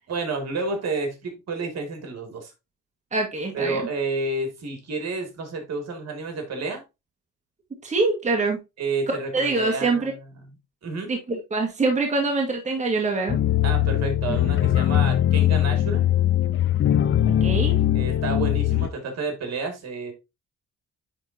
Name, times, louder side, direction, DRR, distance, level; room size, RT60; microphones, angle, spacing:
voice 1, 0.1-2.5 3.5-6.8 8.8-10.1 10.4-10.5 10.8-11.1 13.6-16.0 17.9-20.1, right 3 dB, 60° right, 2.5 m, -30 dB
voice 2, 3.1-3.8 7.8-8.6 9.3-10.1 11.1-13.4 14.3-14.4 17.4-17.8, right 3 dB, 25° right, 1.7 m, -24 dB
sound 1, 13.3-18.9, left 12 dB, 45° left, 0.5 m, -21 dB
9.9 x 3.8 x 2.7 m
cardioid pair, 90°, 30 cm